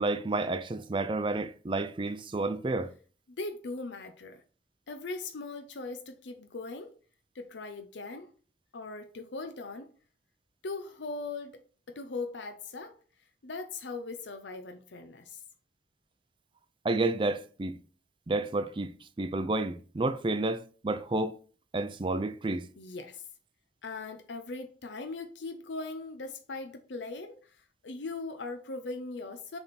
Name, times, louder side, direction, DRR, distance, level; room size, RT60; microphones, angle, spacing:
voice 1, 0.0-2.9 16.8-17.8 18.3-21.4 21.7-22.7, right 2 dB, 25° right, 0.4 m, -30 dB
voice 2, 3.3-4.4 4.9-6.9 7.3-8.3 8.7-9.9 10.6-11.6 11.9-13.0 13.4-15.4 22.8-23.2 23.8-29.6, left 3 dB, 80° left, 0.6 m, -39 dB
6.9 x 3.5 x 4.2 m
head